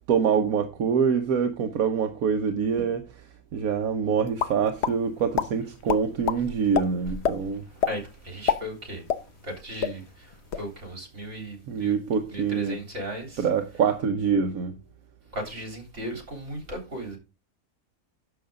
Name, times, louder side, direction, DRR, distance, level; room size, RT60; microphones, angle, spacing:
voice 1, 0.1-3.0 3.5-7.6 11.7-12.8 13.4-14.7, right 6 dB, 80° right, 1.4 m, -25 dB
sound 1, 4.4-4.9 5.3-5.5 5.9-6.4 6.7-6.8 7.2-7.4 7.8-8.0 8.3-9.5 9.8-9.9 10.3-10.7, left 8 dB, 55° left, 1.0 m, -25 dB
voice 2, 7.9-9.0 9.4-11.9 12.3-13.8 15.3-17.2, right 1 dB, 55° right, 3.8 m, -36 dB
11.0 x 7.1 x 3.8 m
omnidirectional pair, 1.5 m